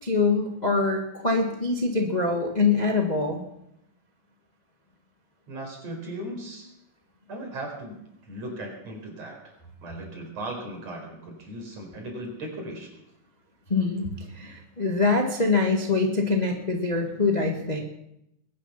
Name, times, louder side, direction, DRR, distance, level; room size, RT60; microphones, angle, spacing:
voice 1, 0.0-3.4 13.7-17.8, left 3 dB, 25° left, 1 dB, 0.9 m, -24 dB
voice 2, 5.5-6.7 7.3-12.9, right 1 dB, 50° right, 1 dB, 5.6 m, -37 dB
22.0 x 10.5 x 5.8 m, 0.81 s
omnidirectional pair, 3.9 m